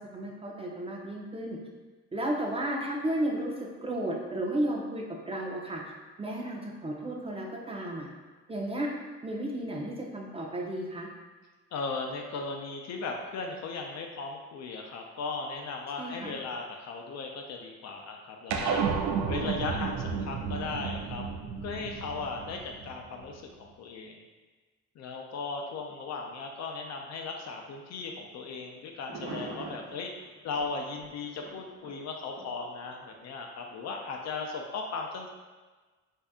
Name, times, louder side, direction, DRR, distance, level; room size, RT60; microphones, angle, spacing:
voice 1, 0.0-1.6 2.1-5.8 6.2-8.1 8.5-8.9 9.2-11.1 16.0-16.4, right 1 dB, 20° right, -1 dB, 0.5 m, -33 dB
voice 2, 11.7-18.8 19.3-21.2 21.6-24.2 25.0-30.1 30.4-35.3, left 4 dB, 60° left, 2 dB, 0.5 m, -37 dB
sound 1, 18.5-23.2, right 5 dB, 70° right, 0.4 m, -32 dB
sound 2, 27.9-28.2 28.6-28.7 29.0-33.3 34.0-34.1, right 3 dB, 85° right, 0.8 m, -44 dB
2.7 x 2.3 x 3.5 m, 1.3 s
cardioid pair, 90°, 30 cm